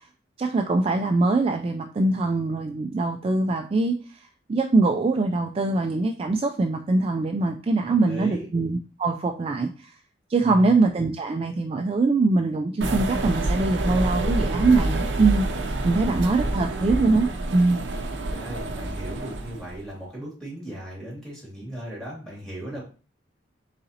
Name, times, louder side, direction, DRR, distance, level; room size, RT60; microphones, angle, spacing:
voice 1, 0.4-3.9 4.5-9.9 10.3-17.8, right 3 dB, 35° right, 4 dB, 0.3 m, -23 dB
voice 2, 7.8-8.5 10.4-10.8 15.8-16.9 18.3-22.8, right 1 dB, 5° left, -6 dB, 2.1 m, -38 dB
sound 1, 12.8-19.8, right 2 dB, 80° right, 0.6 m, -27 dB
4.0 x 3.9 x 2.7 m, 0.37 s
head